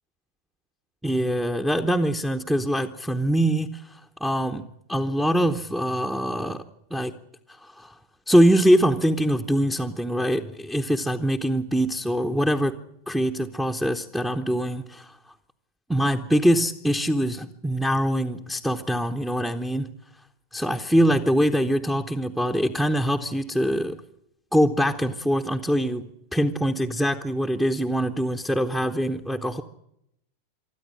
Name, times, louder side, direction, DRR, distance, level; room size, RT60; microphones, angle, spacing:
voice 1, 1.0-7.1 7.6-7.9 8.3-12.8 13.1-15.2 15.9-19.9 20.5-24.0 24.5-29.6, equal, 5° right, 1.0 m, -23 dB
24.0 x 13.5 x 10.0 m
figure-of-eight pair, 90°, 0 cm